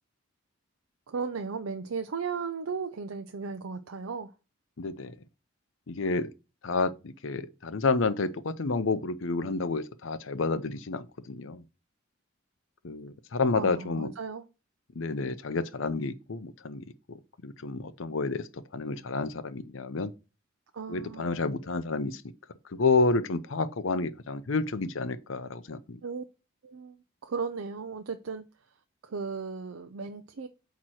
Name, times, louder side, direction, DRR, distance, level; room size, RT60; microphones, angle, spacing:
voice 1, 1.1-4.3 13.5-14.4 20.7-21.3 26.0-26.2 26.6-27.0 27.2-28.4 29.0-30.5, right 5 dB, 85° right, 0.5 m, -35 dB
voice 2, 4.8-5.1 5.9-6.3 6.6-11.6 12.8-14.1 15.0-20.1 20.9-22.2 22.7-26.0, left 3 dB, 70° left, 0.6 m, -30 dB
8.4 x 3.0 x 6.2 m
head